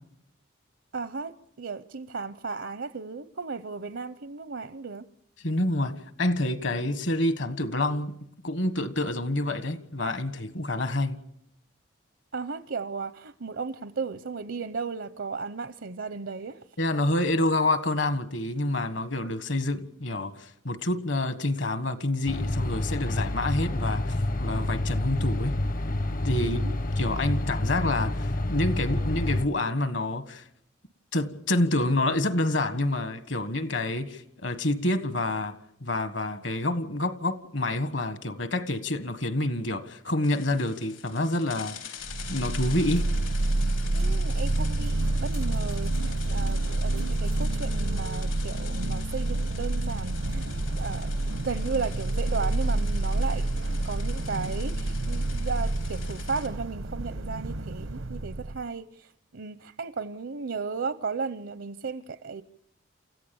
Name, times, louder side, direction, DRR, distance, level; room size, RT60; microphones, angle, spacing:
voice 1, 0.9-5.0 12.3-16.6 26.4-26.8 43.9-53.5 53.8-62.4, right 4 dB, 70° right, 0.7 m, -35 dB
voice 2, 5.4-11.2 16.8-25.6 26.2-26.6 27.0-30.4 31.1-35.5 35.8-41.9 42.3-43.1, left 1 dB, 65° left, 1.6 m, -28 dB
sound 1, 22.3-29.5, left 1 dB, 45° left, 0.7 m, -28 dB
sound 2, 40.2-56.5, left 8 dB, 85° left, 3.5 m, -45 dB
sound 3, 42.0-58.6, right 2 dB, 90° right, 1.1 m, -28 dB
28.5 x 15.0 x 7.1 m
head